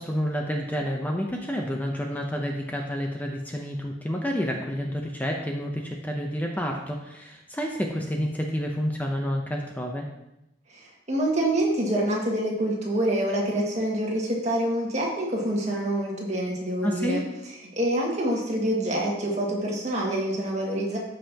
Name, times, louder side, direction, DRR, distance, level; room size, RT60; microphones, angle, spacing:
voice 1, 0.0-10.1 16.8-17.2, equal, 10° left, 1 dB, 0.7 m, -29 dB
voice 2, 10.7-17.2 17.7-21.0, right 1 dB, 40° right, -3 dB, 1.9 m, -26 dB
14.0 x 5.5 x 2.9 m, 0.88 s
head